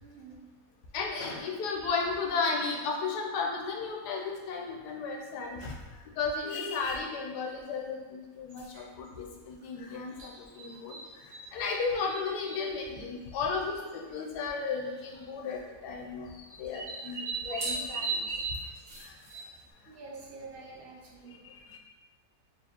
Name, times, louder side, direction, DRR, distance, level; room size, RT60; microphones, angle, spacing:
voice 1, 0.0-0.5 19.9-21.4, right 3 dB, 80° right, -3 dB, 0.5 m, -47 dB
voice 2, 0.9-5.7 6.1-11.2 11.5-18.4 19.0-19.1 21.3-21.8, left 4 dB, 80° left, 0 dB, 1.3 m, -34 dB
sound 1, 8.5-8.8 10.2-11.4 11.7-12.7 13.6-13.7 13.9-14.0 14.9-15.2 16.5-19.7, right 4 dB, 45° right, 1.1 m, -37 dB
4.4 x 3.0 x 2.9 m, 1.4 s
omnidirectional pair, 1.7 m